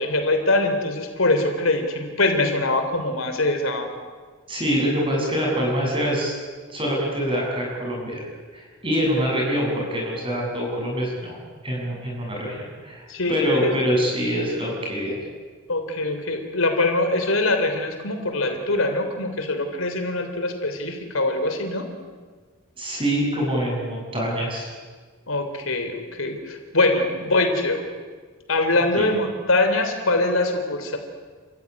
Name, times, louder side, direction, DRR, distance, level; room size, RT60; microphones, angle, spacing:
voice 1, 0.0-3.9 13.1-13.4 15.7-21.9 25.3-27.8 28.5-31.0, left 2 dB, 75° left, 6 dB, 3.4 m, -23 dB
voice 2, 4.5-6.3 6.7-8.2 8.5-11.4 11.6-15.2 22.8-24.7 29.0-29.1, equal, 25° right, -2 dB, 7.9 m, -25 dB
29.0 x 15.0 x 9.8 m, 1.5 s
head